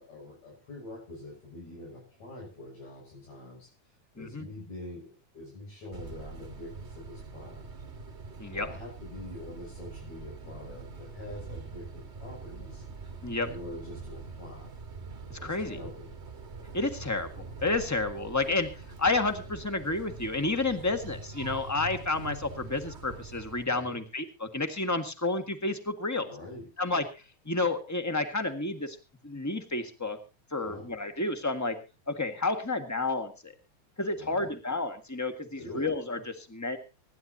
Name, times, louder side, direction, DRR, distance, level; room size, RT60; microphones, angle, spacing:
voice 1, 0.0-7.7 8.5-12.8 13.4-14.8 15.4-16.1 23.7-24.0 26.2-26.7 30.6-30.9 34.1-34.5 35.6-35.9, left 2 dB, 70° left, -3 dB, 8.1 m, -45 dB
sound 1, 5.9-23.6, right 4 dB, 30° right, 1.5 m, -44 dB
voice 2, 15.3-15.8 16.7-18.7 19.0-26.3 26.8-27.0 27.4-29.0 29.2-30.2 30.5-31.7 32.1-33.5 34.0-36.8, left 3 dB, 10° left, 8 dB, 0.8 m, -30 dB
25.0 x 12.0 x 2.8 m, 0.30 s
omnidirectional pair, 3.3 m